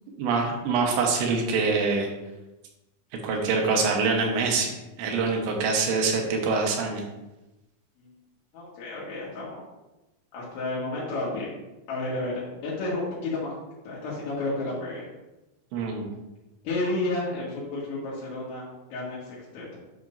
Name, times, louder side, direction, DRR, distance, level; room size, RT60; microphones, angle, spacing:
voice 1, 0.1-2.1 3.2-7.0 15.7-16.1, right 4 dB, 75° right, 1 dB, 3.3 m, -25 dB
voice 2, 8.5-9.6 10.3-11.5 11.9-13.5 13.9-15.1 16.6-19.8, left 2 dB, 80° left, -7 dB, 4.0 m, -31 dB
10.5 x 6.0 x 2.6 m, 1.0 s
omnidirectional pair, 5.3 m